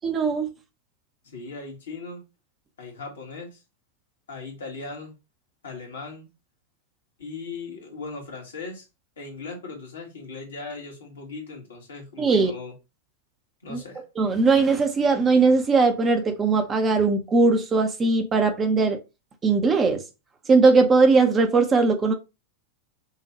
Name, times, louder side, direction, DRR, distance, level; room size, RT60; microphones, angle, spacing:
voice 1, 0.0-0.5 12.2-12.5 13.7-13.8 14.2-19.0 19.4-20.0 20.5-22.1, right 4 dB, 20° right, 1.1 m, -19 dB
voice 2, 1.2-2.2 2.8-3.6 4.3-5.1 5.6-6.3 7.2-8.9 9.2-12.7 13.6-14.0, left 4 dB, 65° left, 1.8 m, -38 dB
5.7 x 2.7 x 3.1 m
figure-of-eight pair, 90°, 0 cm